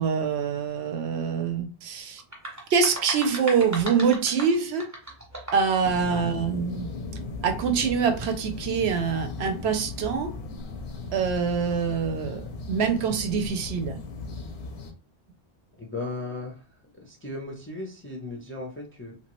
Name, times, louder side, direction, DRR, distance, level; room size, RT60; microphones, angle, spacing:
voice 1, 0.0-2.2 2.7-4.9 5.5-6.9 7.4-10.3 11.1-12.4 12.7-14.0, right 6 dB, 80° right, 6 dB, 0.8 m, -25 dB
sound 1, 2.2-5.8, right 1 dB, 20° right, 0.8 m, -37 dB
sound 2, 5.8-14.9, left 3 dB, 80° left, 0.9 m, -37 dB
voice 2, 15.8-16.6 17.0-19.2, left 2 dB, 15° left, -1 dB, 0.4 m, -36 dB
2.9 x 2.3 x 3.0 m, 0.34 s
omnidirectional pair, 1.1 m